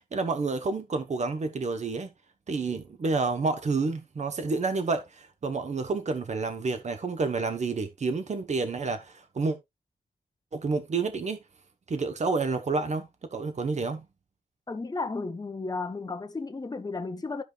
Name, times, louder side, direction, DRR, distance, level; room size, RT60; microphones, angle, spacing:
voice 1, 0.0-2.1 2.5-9.6 10.5-11.4 11.9-14.0, right 4 dB, 50° right, 1.2 m, -29 dB
voice 2, 14.7-17.4, left 3 dB, 25° left, 1.0 m, -33 dB
14.5 x 5.0 x 2.5 m
wide cardioid pair, 115°, 15 cm